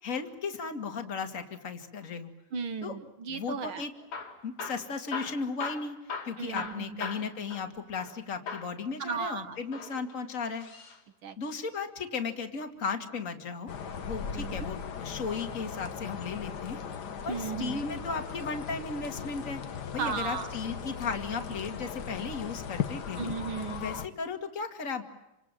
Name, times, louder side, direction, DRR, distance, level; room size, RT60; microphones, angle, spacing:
voice 1, 0.0-2.3 2.8-3.0 3.3-3.9 4.4-6.0 6.2-10.7 11.4-13.7 14.0-16.8 17.2-19.6 19.9-23.3 23.8-25.0, left 5 dB, 30° left, 6 dB, 2.2 m, -35 dB
voice 2, 2.5-3.8 6.4-7.1 9.0-9.6 11.2-11.4 14.3-14.6 17.3-17.8 20.0-20.5 23.2-23.9, right 6 dB, 55° right, 11 dB, 1.7 m, -35 dB
Hammer / Drill, 4.0-8.2 8.5-8.8 9.6-11.0 12.8-14.0 15.7-16.2 16.9-17.7 18.4-18.6 18.9-19.0 19.7-19.8, left 4 dB, 70° left, 4.4 m, -41 dB
sound 1, 13.7-24.1, left 7 dB, 50° left, 1.3 m, -38 dB
28.0 x 27.0 x 7.6 m, 0.92 s
omnidirectional pair, 3.5 m